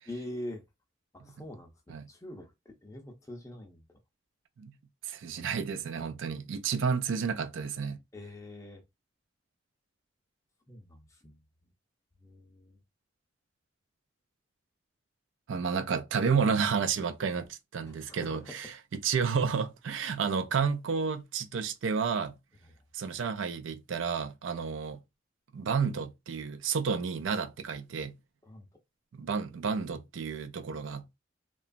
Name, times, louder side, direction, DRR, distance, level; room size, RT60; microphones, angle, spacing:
voice 1, 0.1-0.6 1.1-4.0 8.1-8.8 10.7-11.7 12.2-12.8 17.8-18.7 22.6-22.8 28.4-28.7, left 1 dB, 15° left, 0.5 m, -45 dB
voice 2, 5.0-8.0 15.5-18.7 19.0-22.3 22.9-25.0 25.5-28.1 29.2-31.2, right 6 dB, 80° right, 0.4 m, -31 dB
2.8 x 2.3 x 2.4 m
head